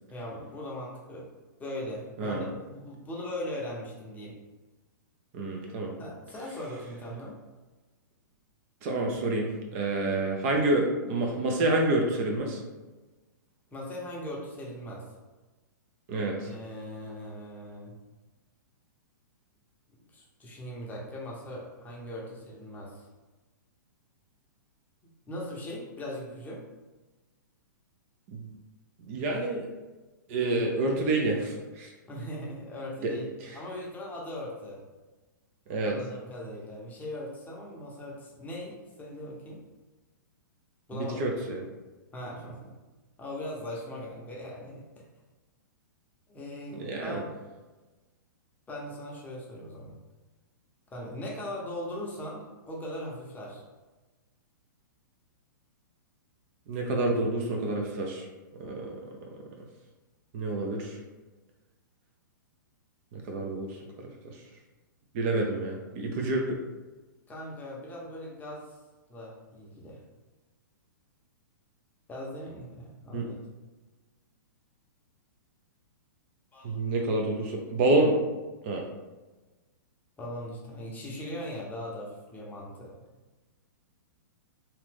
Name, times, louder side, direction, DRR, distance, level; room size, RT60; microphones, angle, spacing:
voice 1, 0.1-1.3 1.6-4.4 6.0-7.4 13.7-15.1 16.4-17.9 20.1-23.1 25.3-26.6 32.1-34.8 35.8-39.6 40.9-41.2 42.1-42.8 43.2-45.0 46.3-47.3 48.7-50.0 50.9-53.6 67.3-68.7 69.1-70.0 72.1-73.4 76.5-76.8 80.2-83.0, left 1 dB, 15° left, -3 dB, 0.7 m, -39 dB
voice 2, 5.3-5.9 8.8-12.6 16.1-16.5 28.3-28.5 29.0-29.7 30.3-31.9 33.0-33.1 33.4-33.6 35.7-36.0 40.9-41.6 46.7-47.2 56.7-58.3 58.6-59.0 59.2-59.3 60.3-61.0 63.1-63.8 64.2-64.4 65.1-66.6 73.1-73.3 76.6-78.2 78.6-78.8, right 2 dB, 45° right, 1 dB, 0.6 m, -28 dB
2.8 x 2.5 x 3.5 m, 1.2 s
hypercardioid pair, 120°, 11 cm